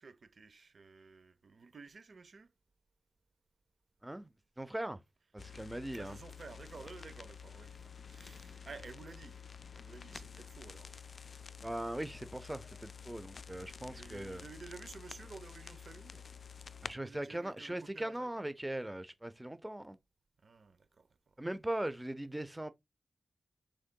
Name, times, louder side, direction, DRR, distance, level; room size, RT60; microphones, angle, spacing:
voice 1, 0.0-2.5 5.9-9.4 9.6-10.9 13.8-16.3 17.0-18.3 20.4-21.4, right 4 dB, 65° right, 0.7 m, -53 dB
voice 2, 4.6-5.0 5.3-6.2 11.6-14.4 16.8-20.0 21.4-22.7, right 1 dB, 15° right, 0.6 m, -40 dB
sound 1, 5.4-17.0, left 6 dB, 60° left, 0.4 m, -50 dB
6.5 x 3.6 x 2.2 m
cardioid pair, 60°, 0 cm